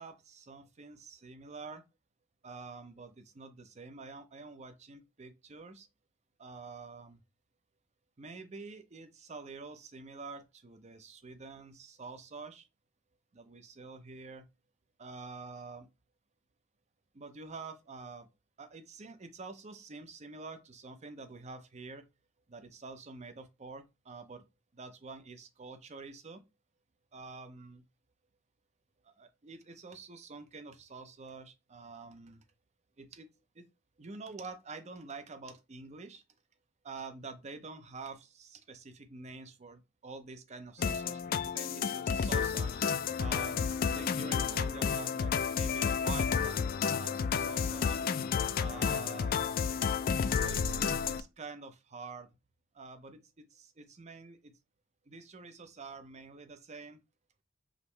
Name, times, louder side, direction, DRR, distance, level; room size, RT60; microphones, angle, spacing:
voice 1, 0.0-1.8 2.4-5.9 6.4-7.2 8.2-12.7 13.3-14.5 15.0-15.9 17.1-18.3 18.6-22.1 22.5-24.4 24.7-26.4 27.1-27.8 29.0-32.4 33.0-33.7 34.0-36.2 36.8-42.8 43.2-48.0 48.6-49.6 50.3-52.4 52.7-54.6 55.1-57.0, right 4 dB, 35° right, 0.6 m, -47 dB
sound 1, 40.8-51.2, left 6 dB, 45° left, 0.3 m, -31 dB
5.1 x 3.0 x 3.2 m
head